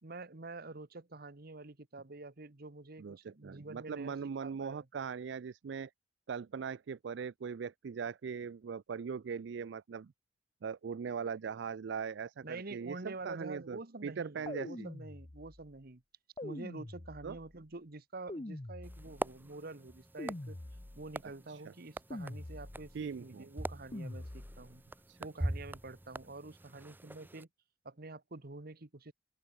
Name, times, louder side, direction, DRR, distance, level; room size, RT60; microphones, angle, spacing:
voice 1, 0.0-4.1 4.4-4.9 12.4-16.0 16.4-20.6 21.0-24.8 25.2-27.5 27.8-29.1, right 3 dB, 55° right, 1.3 m, -47 dB
voice 2, 3.0-5.9 6.3-10.1 10.6-14.9 17.2-17.4 21.5-21.7 22.9-23.5 25.1-25.2, right 6 dB, 70° right, 0.4 m, -40 dB
sound 1, 14.5-15.7 16.4-17.5 18.3-19.4 20.2-21.2 22.1-23.0 23.9-24.8, left 1 dB, 30° left, 0.9 m, -45 dB
sound 2, 18.8-27.4, right 1 dB, 10° right, 0.5 m, -43 dB
open air
head